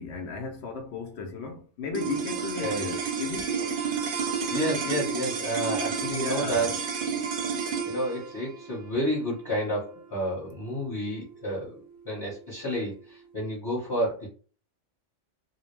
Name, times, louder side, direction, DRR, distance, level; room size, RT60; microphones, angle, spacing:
voice 1, 0.0-3.6 6.0-6.7, left 4 dB, 70° left, 0.8 m, -35 dB
sound 1, 1.9-12.4, right 6 dB, 60° right, 0.6 m, -31 dB
voice 2, 4.5-6.7 7.8-11.8 12.0-14.3, equal, 20° left, 1.0 m, -30 dB
2.3 x 2.0 x 3.1 m
omnidirectional pair, 1.3 m